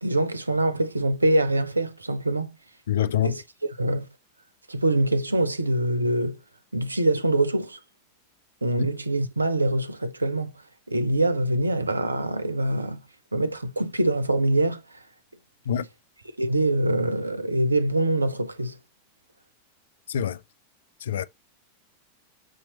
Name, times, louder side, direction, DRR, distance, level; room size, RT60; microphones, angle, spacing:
voice 1, 0.0-2.5 3.2-3.4 3.7-4.1 4.7-6.4 6.7-7.8 8.6-10.5 10.9-13.0 13.3-15.0 16.4-18.8, right 1 dB, 80° right, 0.5 m, -24 dB
voice 2, 2.9-3.4 15.7-15.9 20.1-20.4 21.0-21.2, left 10 dB, 60° left, 0.4 m, -25 dB
6.1 x 2.9 x 2.8 m
figure-of-eight pair, 90°, 0 cm